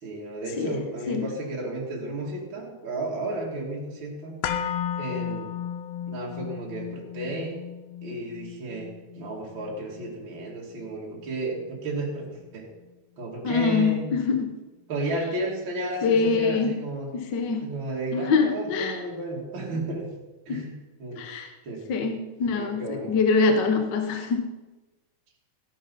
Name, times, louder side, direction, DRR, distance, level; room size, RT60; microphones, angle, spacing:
voice 1, 0.0-4.4 5.0-5.5 6.1-7.6 8.0-12.7 13.2-14.1 14.9-17.1 17.6-20.1 20.5-20.7 21.0-21.2 21.6-21.9 22.5-23.1, right 2 dB, 45° right, -3 dB, 2.9 m, -33 dB
sound 1, 4.4-12.5 12.8-12.9, left 9 dB, 70° left, 1.9 m, -35 dB
voice 2, 13.4-14.5 16.0-16.7 17.1-17.7 18.1-19.0 20.5-20.6 21.1-21.5 21.9-24.4, left 4 dB, 50° left, 5 dB, 1.4 m, -24 dB
15.0 x 10.5 x 5.5 m, 1.2 s
omnidirectional pair, 3.3 m